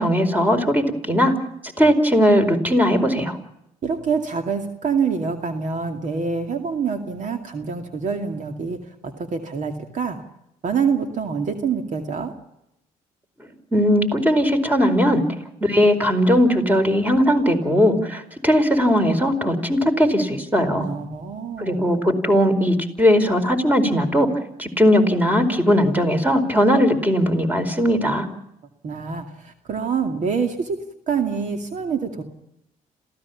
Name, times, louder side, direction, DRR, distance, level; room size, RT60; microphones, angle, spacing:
voice 1, 0.0-1.3 1.8-3.4 13.7-15.2 15.6-20.8 21.6-24.3 24.6-28.3, equal, 10° right, 7 dB, 4.7 m, -18 dB
voice 2, 3.8-10.2 10.6-12.3 20.8-21.8 28.0-28.2 28.8-30.8 31.1-32.2, right 6 dB, 55° right, 6 dB, 2.5 m, -26 dB
27.0 x 16.5 x 7.1 m, 0.82 s
supercardioid pair, 70°, 15 cm